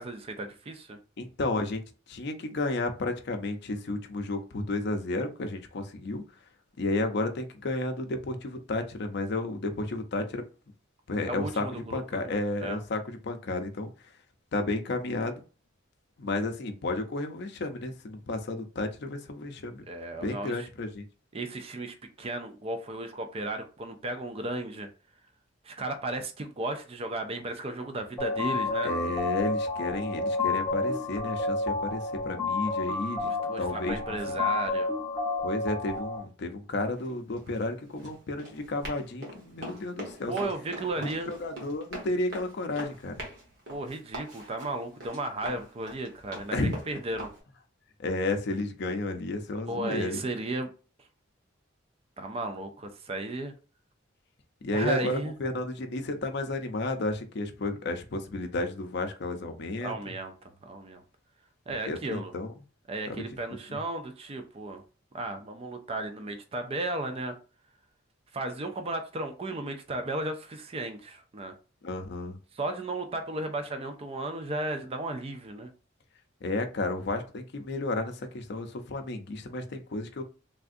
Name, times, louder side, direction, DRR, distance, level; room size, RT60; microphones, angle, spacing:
voice 1, 0.0-1.0 11.3-12.3 12.6-12.8 19.9-20.7 21.3-24.9 25.6-28.9 33.2-34.9 40.3-41.3 43.7-47.3 49.7-50.7 51.0-51.1 52.2-53.5 54.7-55.3 59.8-61.0 61.7-62.3 62.9-64.8 65.1-67.4 68.3-71.5 72.5-75.7, right 2 dB, 30° right, 0.4 m, -34 dB
voice 2, 1.2-1.8 2.1-6.2 6.8-10.4 11.1-13.9 14.5-15.4 16.2-19.9 20.2-21.0 28.8-34.2 35.4-40.5 41.0-43.1 46.5-46.8 48.0-50.2 54.6-59.9 61.9-62.5 63.1-63.2 63.7-63.8 71.8-72.4 76.4-80.2, left 2 dB, 55° left, 0.5 m, -32 dB
sound 1, 28.2-36.2, left 3 dB, ahead, 1.2 m, -30 dB
Run, 36.8-47.4, right 1 dB, 60° right, 1.3 m, -43 dB
3.4 x 2.4 x 2.5 m
head